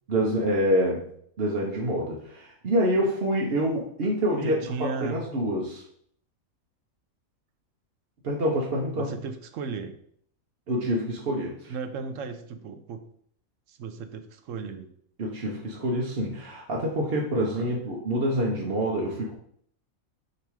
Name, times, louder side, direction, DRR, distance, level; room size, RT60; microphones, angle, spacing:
voice 1, 0.1-1.1 1.4-5.8 8.2-9.1 10.7-11.7 15.2-19.3, equal, 50° right, -3 dB, 1.1 m, -26 dB
voice 2, 4.4-5.2 9.0-10.0 11.7-13.0 13.7-14.9 17.4-17.7, right 5 dB, 70° right, 9 dB, 1.0 m, -35 dB
6.8 x 3.0 x 4.7 m, 0.64 s
omnidirectional pair, 1.5 m